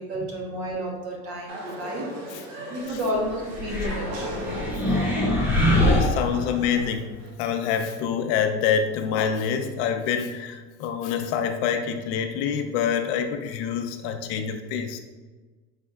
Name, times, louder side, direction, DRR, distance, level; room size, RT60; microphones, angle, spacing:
voice 1, 0.0-4.5, equal, 60° right, -1 dB, 1.2 m, -32 dB
sound 1, 1.5-7.3, right 1 dB, 75° right, 1.1 m, -38 dB
sound 2, 3.5-6.9, left 1 dB, 5° right, 0.4 m, -24 dB
voice 2, 5.7-7.1 7.4-15.0, left 7 dB, 80° left, 6 dB, 0.6 m, -26 dB
4.3 x 4.1 x 2.3 m, 1.3 s
cardioid pair, 160°, 33 cm